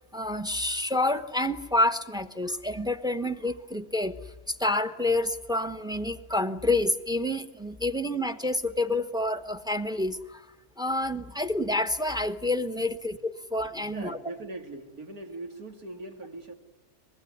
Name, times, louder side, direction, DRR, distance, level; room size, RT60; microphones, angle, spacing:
voice 1, 0.1-4.2 4.5-10.5 10.8-14.2, left 1 dB, 5° right, 10 dB, 0.9 m, -28 dB
voice 2, 13.7-16.5, right 2 dB, 85° right, 4 dB, 3.1 m, -41 dB
24.0 x 21.5 x 9.6 m, 1.1 s
omnidirectional pair, 1.5 m